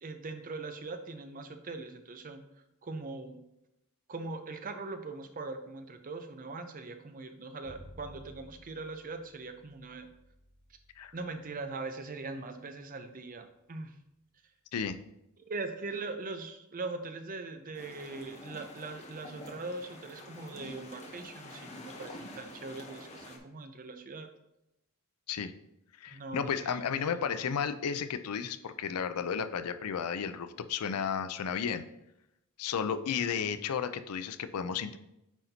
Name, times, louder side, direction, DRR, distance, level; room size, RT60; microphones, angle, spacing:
voice 1, 0.0-2.4 2.8-3.4 4.1-10.1 11.1-13.9 15.5-24.3 26.1-26.8, right 3 dB, 40° right, 7 dB, 0.6 m, -41 dB
Bowed string instrument, 7.6-13.8, equal, 60° right, 2.3 m, -57 dB
sound 1, 17.7-23.4, left 1 dB, 30° left, 0.9 m, -47 dB
voice 2, 26.0-31.9 32.6-35.0, left 7 dB, 90° left, 12 dB, 0.4 m, -33 dB
9.1 x 4.2 x 2.7 m, 0.87 s
head